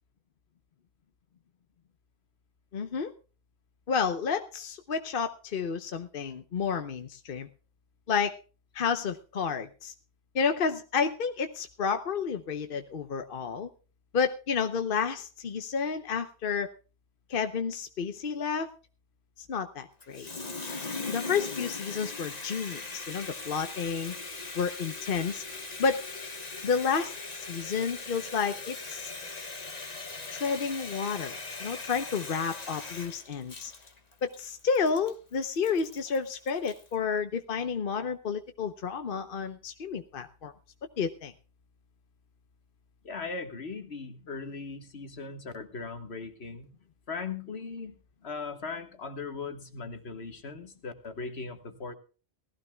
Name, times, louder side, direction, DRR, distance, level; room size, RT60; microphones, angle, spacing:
voice 1, 2.7-3.1 3.9-7.5 8.1-8.4 8.7-9.9 10.3-13.7 14.1-16.7 17.3-18.7 19.4-20.3 21.1-24.1 24.6-25.4 25.8-26.0 26.6-27.2 27.5-29.1 30.3-33.7 34.2-40.5 41.0-41.3, left 6 dB, 60° left, 8 dB, 1.0 m, -30 dB
Water tap faucet, 20.0-36.9, left 3 dB, 40° left, 1.4 m, -40 dB
voice 2, 43.0-46.7 47.1-47.9 48.2-51.9, left 4 dB, 80° left, 7 dB, 1.8 m, -38 dB
19.5 x 15.5 x 2.3 m, 0.35 s
omnidirectional pair, 1.1 m